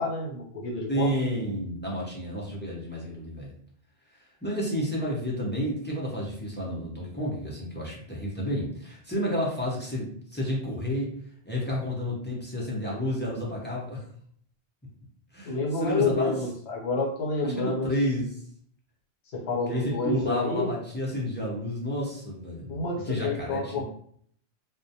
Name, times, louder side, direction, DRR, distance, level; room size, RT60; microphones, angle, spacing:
voice 1, 0.0-1.1 15.4-17.9 19.3-20.7 22.7-23.8, left 3 dB, 75° left, -1 dB, 1.0 m, -29 dB
voice 2, 0.9-3.5 4.4-11.1 11.5-14.0 15.3-16.4 17.4-18.3 19.7-22.8 23.0-23.8, equal, 15° left, -6 dB, 0.4 m, -30 dB
2.3 x 2.1 x 2.7 m, 0.62 s
omnidirectional pair, 1.1 m